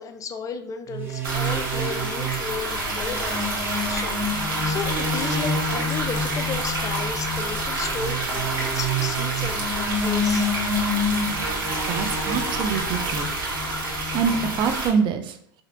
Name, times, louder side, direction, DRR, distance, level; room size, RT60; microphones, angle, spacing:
voice 1, 0.0-10.5, left 5 dB, 30° left, 7 dB, 0.4 m, -34 dB
sound 1, 0.9-14.6, left 1 dB, 20° right, 0.9 m, -29 dB
sound 2, 1.2-14.9, right 2 dB, 85° right, 1.1 m, -28 dB
voice 2, 11.9-13.3 14.1-15.4, right 6 dB, 45° right, 7 dB, 0.5 m, -25 dB
4.1 x 2.6 x 2.6 m, 0.63 s
hypercardioid pair, 90°, 11 cm